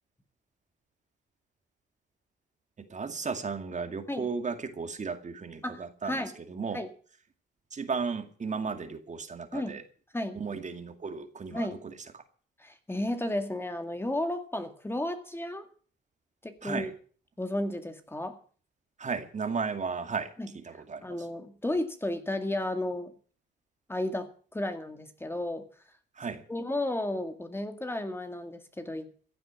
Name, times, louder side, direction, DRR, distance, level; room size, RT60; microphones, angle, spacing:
voice 1, 2.9-6.8 7.7-9.8 10.3-12.2 16.6-16.9 19.0-21.3 26.2-26.4, right 5 dB, 35° right, 2.2 m, -35 dB
voice 2, 5.6-6.3 6.7-6.9 9.5-9.7 10.1-10.4 11.5-11.8 12.6-15.6 16.4-16.9 17.4-18.4 20.4-20.5 20.7-23.1 23.9-25.6 26.5-29.1, left 1 dB, 10° left, 2.0 m, -33 dB
15.5 x 7.8 x 9.4 m
cardioid pair, 90°, 20 cm